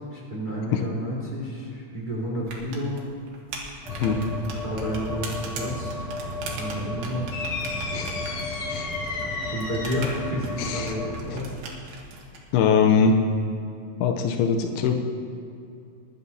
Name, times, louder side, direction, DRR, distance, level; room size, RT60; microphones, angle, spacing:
voice 1, 0.1-3.0 4.1-6.0 6.4-8.2 9.5-11.8, equal, 30° right, -4 dB, 0.9 m, -31 dB
sound 1, 2.4-12.4, right 4 dB, 85° right, 3.6 m, -40 dB
sound 2, 3.8-11.2, left 1 dB, ahead, 2.0 m, -34 dB
sound 3, 7.3-10.2, left 4 dB, 70° left, 2.8 m, -34 dB
voice 2, 10.6-10.9 12.5-13.2 14.0-14.9, left 6 dB, 90° left, 5 dB, 2.7 m, -21 dB
22.0 x 11.0 x 2.8 m, 2.6 s
omnidirectional pair, 4.6 m